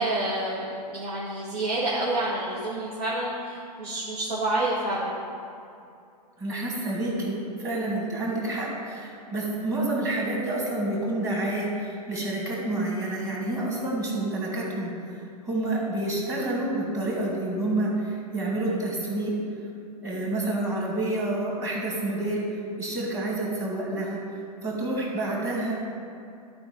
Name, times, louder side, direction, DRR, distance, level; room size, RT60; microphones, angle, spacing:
voice 1, 0.0-5.1, right 2 dB, 70° right, -7 dB, 2.0 m, -28 dB
voice 2, 6.4-15.2 15.4-19.4 20.0-24.2 24.6-25.7, right 2 dB, 15° right, -3 dB, 2.2 m, -28 dB
10.5 x 4.8 x 6.1 m, 2.5 s
hypercardioid pair, 135°, 21 cm